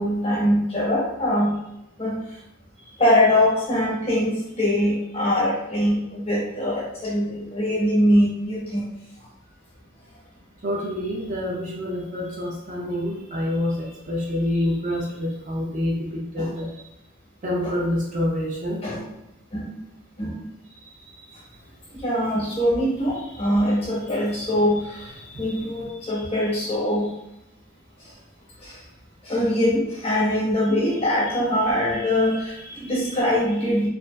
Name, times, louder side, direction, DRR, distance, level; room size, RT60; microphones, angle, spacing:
voice 1, 0.0-1.5 2.0-2.1 3.0-8.8 16.4-16.5 17.6-17.7 18.8-19.0 19.5-19.7 20.2-20.4 22.0-24.8 25.4-27.0 29.3-33.9, left 1 dB, 25° left, -6 dB, 0.7 m, -22 dB
voice 2, 10.6-16.7 17.4-18.8, left 1 dB, 35° right, -3 dB, 0.4 m, -27 dB
2.4 x 2.3 x 2.3 m, 0.85 s
head